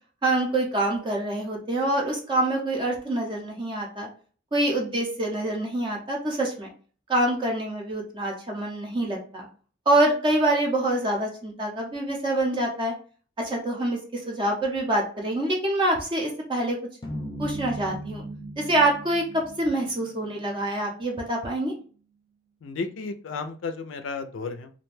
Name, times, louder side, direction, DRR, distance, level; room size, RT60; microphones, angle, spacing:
voice 1, 0.2-4.1 4.5-6.7 7.1-9.5 9.9-12.9 13.4-16.8 17.4-18.2 18.6-21.7, right 1 dB, 25° right, 0 dB, 0.5 m, -26 dB
sound 1, 17.0-21.4, right 1 dB, 25° left, 0.6 m, -38 dB
voice 2, 22.6-24.7, left 4 dB, 80° left, 8 dB, 0.4 m, -33 dB
2.4 x 2.2 x 3.1 m, 0.41 s
head